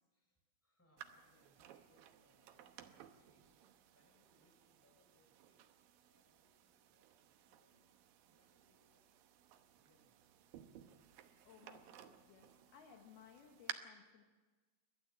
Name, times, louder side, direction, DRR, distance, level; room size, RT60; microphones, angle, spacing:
voice 1, 0.1-3.6 3.9-5.7 6.1-7.9 8.2-11.1, left 1 dB, 5° left, 0 dB, 5.2 m, -77 dB
sound 1, 1.0-13.7, right 11 dB, 70° right, 2.3 m, -57 dB
voice 2, 11.4-14.2, left 7 dB, 70° left, 2 dB, 3.2 m, -62 dB
29.5 x 12.5 x 7.7 m, 1.3 s
omnidirectional pair, 5.0 m